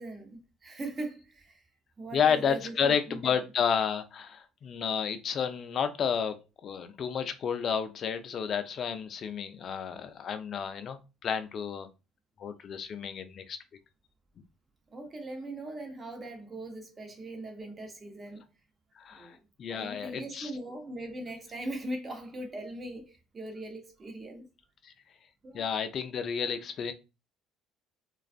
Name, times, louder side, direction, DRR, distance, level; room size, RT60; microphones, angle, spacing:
voice 1, 0.0-1.6 2.0-3.4 14.9-18.4 19.1-24.5 25.4-25.7, right 1 dB, 30° right, 0.7 m, -40 dB
voice 2, 2.1-6.3 6.6-11.9 12.4-13.6 19.0-20.5 24.8-24.9 25.5-26.9, left 7 dB, 50° left, 0.4 m, -31 dB
2.4 x 2.3 x 2.4 m
supercardioid pair, 95°, 0 cm